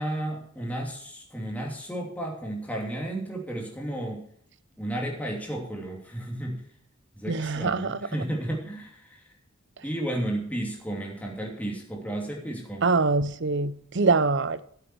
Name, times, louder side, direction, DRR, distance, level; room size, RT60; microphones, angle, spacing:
voice 1, 0.0-4.2 4.8-6.6 7.1-9.3 9.8-12.9, right 1 dB, 5° left, 2.8 m, -33 dB
voice 2, 7.3-8.0 12.8-14.6, right 3 dB, 55° right, 0.7 m, -24 dB
13.5 x 7.9 x 4.7 m
head